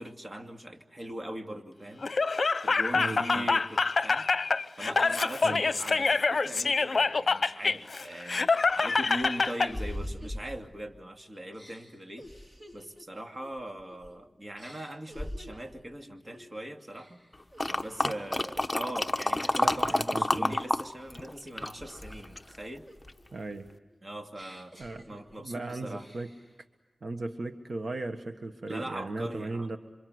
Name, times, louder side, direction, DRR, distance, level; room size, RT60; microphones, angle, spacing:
voice 1, 0.0-2.1 2.6-4.3 4.8-12.3 12.7-17.2 17.6-22.9 24.0-24.7 25.1-26.1 28.7-29.7, right 1 dB, 35° right, 5 dB, 2.6 m, -41 dB
Laughter, 2.0-9.7, left 4 dB, 60° left, 0.8 m, -26 dB
voice 2, 2.9-3.5 5.4-5.6 18.0-18.2 19.5-20.6 23.3-23.7 24.8-25.0 25.4-26.3 27.0-29.8, right 2 dB, 70° right, 6 dB, 1.4 m, -37 dB
sound 1, 8.3-11.1 11.5-14.2 14.6-15.8 16.3-16.6 16.9-18.2 18.6-19.0 19.5-20.1 20.6-22.5 22.9-25.6 25.9-26.6, equal, 20° right, 4.2 m, -45 dB
sound 2, 17.6-20.8 21.1-22.6 23.1-23.2, left 1 dB, 15° left, 1.2 m, -28 dB
28.0 x 25.5 x 8.0 m, 1.1 s
wide cardioid pair, 60°, 0 cm